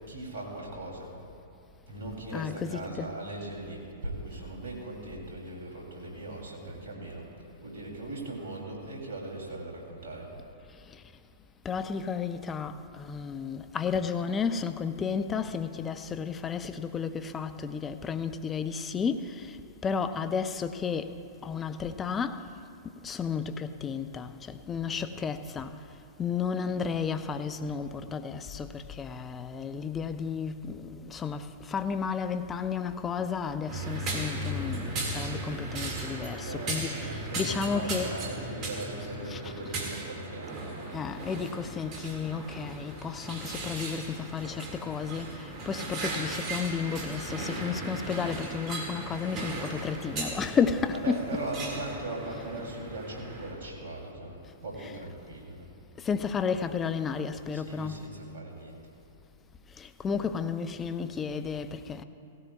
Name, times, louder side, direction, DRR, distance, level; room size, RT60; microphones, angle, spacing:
voice 1, 0.1-1.1 1.9-7.3 7.6-10.3 36.4-41.0 50.9-55.7 57.5-58.8, right 2 dB, 70° right, 3.3 m, -39 dB
voice 2, 2.3-3.1 10.9-11.0 11.6-22.5 23.0-25.8 26.2-38.1 39.3-39.4 40.9-51.2 56.0-58.0 59.8-62.0, left 6 dB, 20° left, 0.6 m, -32 dB
sound 1, 33.7-53.5, right 2 dB, 35° right, 2.2 m, -37 dB
17.5 x 16.5 x 2.4 m
hypercardioid pair, 110°, 0 cm